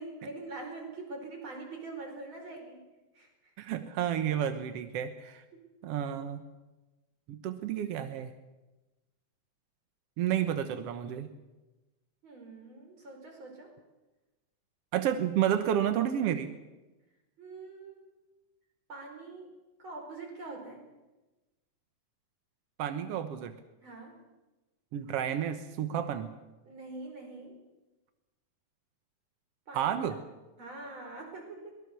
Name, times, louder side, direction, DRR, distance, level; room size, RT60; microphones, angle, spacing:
voice 1, 0.0-2.8 3.1-3.5 3.8-4.3 5.5-5.6 12.2-13.7 17.4-18.1 18.9-19.5 19.8-20.8 23.8-24.2 26.6-27.6 29.7-30.0 30.6-31.8, right 3 dB, 35° right, 2 dB, 5.4 m, -44 dB
voice 2, 3.6-5.4 5.8-6.4 7.3-8.3 10.2-11.3 14.9-16.5 22.8-23.5 24.9-26.3 29.7-30.2, right 10 dB, 70° right, 9 dB, 1.5 m, -31 dB
23.0 x 19.5 x 6.8 m, 1.1 s
omnidirectional pair, 4.0 m